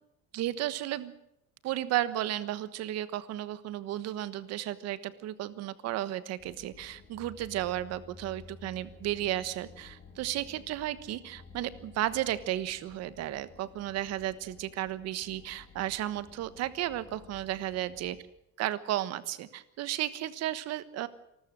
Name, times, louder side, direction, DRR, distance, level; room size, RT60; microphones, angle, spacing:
voice 1, 0.3-1.1 1.6-18.2 18.6-21.1, right 13 dB, 60° right, 15 dB, 1.3 m, -33 dB
sound 1, 6.4-18.2, left 4 dB, 25° left, 3.5 m, -53 dB
27.0 x 13.5 x 7.6 m, 0.83 s
cardioid pair, 165°, 29 cm